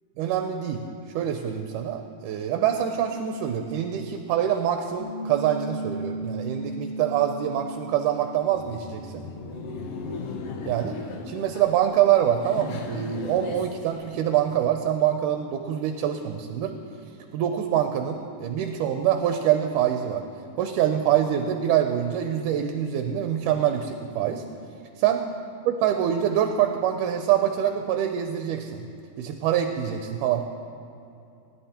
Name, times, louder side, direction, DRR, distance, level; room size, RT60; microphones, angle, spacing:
voice 1, 0.2-0.8 1.2-9.3 10.6-11.0 11.3-16.7 17.3-20.2 20.6-24.5 25.0-25.3 25.7-28.8 29.2-30.4, right 10 dB, 80° right, 5 dB, 2.1 m, -25 dB
Piano, 5.0-10.1, right 2 dB, 50° left, 1.5 m, -36 dB
Laughter, 8.4-14.7, left 4 dB, 85° left, 1.3 m, -38 dB
19.0 x 11.0 x 2.9 m, 2.6 s
omnidirectional pair, 3.8 m